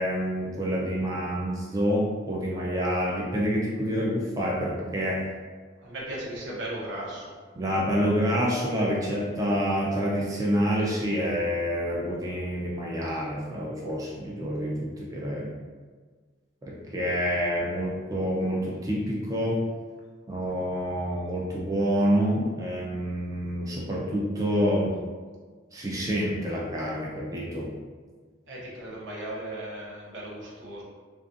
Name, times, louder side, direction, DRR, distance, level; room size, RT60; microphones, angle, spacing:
voice 1, 0.0-5.3 7.5-15.5 16.6-19.6 20.3-24.9 25.7-27.7, equal, 20° right, -4 dB, 0.3 m, -27 dB
voice 2, 5.8-7.4 28.5-30.8, right 1 dB, 80° right, -4 dB, 0.7 m, -36 dB
2.4 x 2.3 x 2.5 m, 1.5 s
head